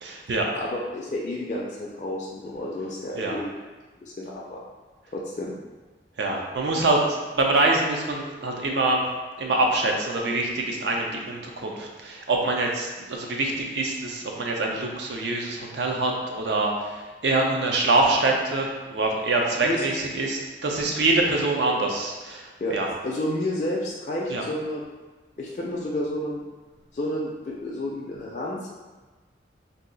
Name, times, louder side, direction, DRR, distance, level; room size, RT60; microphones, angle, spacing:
voice 1, 0.0-0.5 3.2-3.4 6.2-9.0 9.4-22.4 22.7-22.9 24.3-24.4, right 2 dB, 80° right, 0 dB, 0.5 m, -25 dB
voice 2, 0.5-3.5 4.0-4.6 5.1-5.5 19.6-19.9 22.6-22.8 23.0-24.8 25.4-26.4 26.9-28.7, left 1 dB, 45° left, -3 dB, 0.3 m, -30 dB
2.7 x 2.3 x 3.8 m, 1.3 s
head